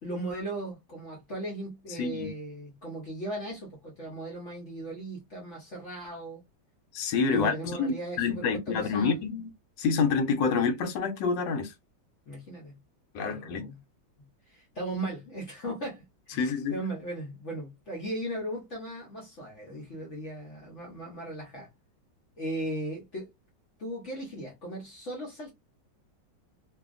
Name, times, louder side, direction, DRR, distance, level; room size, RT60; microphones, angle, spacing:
voice 1, 0.0-6.4 7.2-9.2 12.3-12.8 13.2-13.8 14.2-16.4 16.7-21.7 22.4-23.3 23.8-25.5, right 1 dB, 55° left, 0.9 m, -37 dB
voice 2, 1.9-2.3 6.9-9.5 9.8-11.7 13.1-13.6 16.4-16.7, left 5 dB, 80° left, 1.3 m, -27 dB
2.7 x 2.6 x 2.4 m
omnidirectional pair, 2.0 m